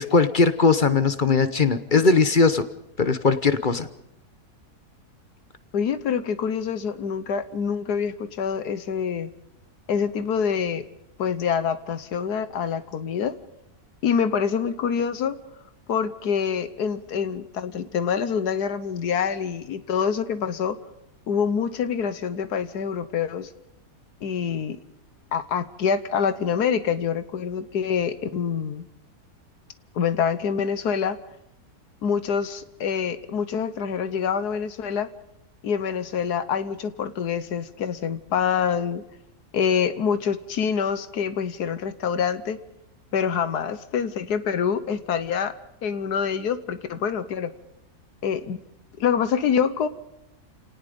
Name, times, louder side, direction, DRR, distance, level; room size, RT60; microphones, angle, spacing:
voice 1, 0.0-2.6 3.0-3.9, left 4 dB, 35° left, 12 dB, 0.9 m, -19 dB
voice 2, 5.7-9.3 9.9-10.8 11.2-13.4 14.0-15.4 15.9-20.8 21.3-23.5 24.2-24.8 25.3-28.9 29.9-31.2 32.0-35.1 35.6-39.0 39.5-42.6 43.1-45.5 45.8-47.5 48.2-48.6 49.0-49.9, left 7 dB, 85° left, 12 dB, 1.6 m, -26 dB
29.0 x 18.5 x 5.3 m, 0.84 s
omnidirectional pair, 1.7 m